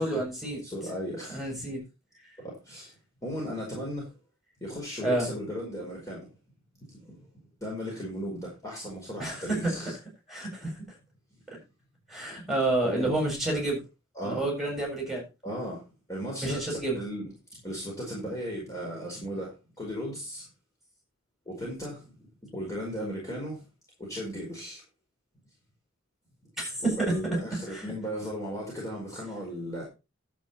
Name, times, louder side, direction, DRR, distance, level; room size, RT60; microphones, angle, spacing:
voice 1, 0.0-0.6 1.3-1.8 5.0-5.3 9.2-9.7 10.3-10.7 12.1-13.8 14.2-15.2 16.4-17.0 26.6-27.1 27.7-27.8, right 2 dB, ahead, -1 dB, 7.3 m, -29 dB
voice 2, 0.6-1.5 2.4-2.9 3.2-4.1 4.6-6.3 7.0-7.2 7.6-9.9 12.8-13.1 13.5-13.7 14.1-14.4 15.4-15.8 16.1-19.5 19.8-20.5 21.4-22.0 22.4-23.6 24.0-24.8 26.8-29.9, equal, 15° left, -4 dB, 5.1 m, -36 dB
11.5 x 8.6 x 4.3 m, 0.28 s
head